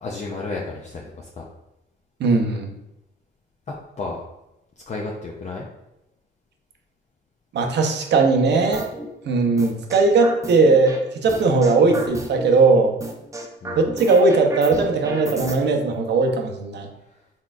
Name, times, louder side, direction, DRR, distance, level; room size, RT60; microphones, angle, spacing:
voice 1, 0.0-1.5 3.7-4.2 4.9-5.7 13.6-13.9 17.1-17.2, left 3 dB, 35° left, -2 dB, 0.6 m, -32 dB
voice 2, 2.2-2.7 7.5-8.8 9.3-12.9 13.8-16.9, right 3 dB, 60° right, 4 dB, 0.7 m, -18 dB
sound 1, 8.7-9.1 9.6-11.0 11.3-12.5 13.0-15.6, right 2 dB, 15° right, 0.6 m, -32 dB
4.2 x 3.7 x 2.4 m, 0.91 s
cardioid pair, 90°, 20 cm